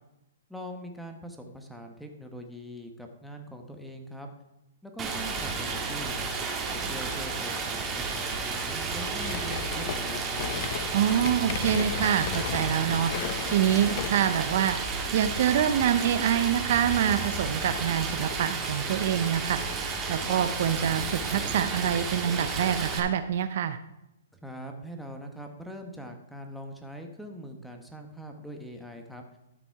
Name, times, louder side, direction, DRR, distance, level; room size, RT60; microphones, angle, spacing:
voice 1, 0.5-4.3 4.8-6.3 6.7-10.6 24.3-29.2, equal, ahead, 3 dB, 1.3 m, -42 dB
Stream, 5.0-23.0, right 4 dB, 20° right, 1.7 m, -32 dB
sound 1, 9.2-14.4, left 10 dB, 50° left, 0.6 m, -36 dB
voice 2, 10.9-13.1 13.5-14.8 15.1-19.6 20.1-23.8, right 9 dB, 55° right, 11 dB, 0.6 m, -26 dB
12.5 x 6.0 x 4.7 m, 0.88 s
hypercardioid pair, 140°, 0 cm